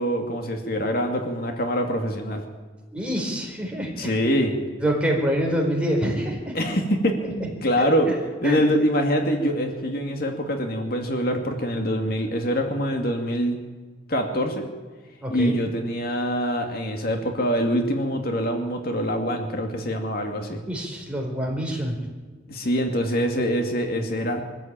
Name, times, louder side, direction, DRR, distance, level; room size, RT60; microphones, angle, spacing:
voice 1, 0.0-2.4 4.0-4.6 6.5-8.1 8.4-13.6 14.1-14.6 15.3-20.6 22.5-24.4, equal, 55° left, 4 dB, 2.4 m, -24 dB
voice 2, 2.9-4.1 4.8-6.5 7.2-7.3 7.8-8.2 8.4-8.6 15.2-15.5 20.7-22.0, equal, 5° right, -1 dB, 4.6 m, -26 dB
23.5 x 14.0 x 9.0 m, 1.4 s
head